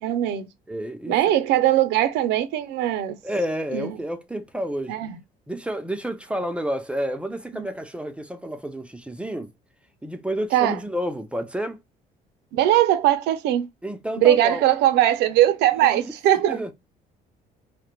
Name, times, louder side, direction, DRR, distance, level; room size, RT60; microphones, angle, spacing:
voice 1, 0.0-0.5 1.1-3.2 3.7-4.0 4.9-5.2 7.5-7.7 10.5-10.8 12.5-13.7 14.2-16.6, right 12 dB, 85° right, 0.4 m, -20 dB
voice 2, 0.7-1.3 3.2-5.0 5.5-9.5 10.0-11.8 13.8-14.6 15.8-16.1 16.5-16.7, equal, 5° right, 0.3 m, -30 dB
2.1 x 2.0 x 2.9 m
cardioid pair, 110°, 17 cm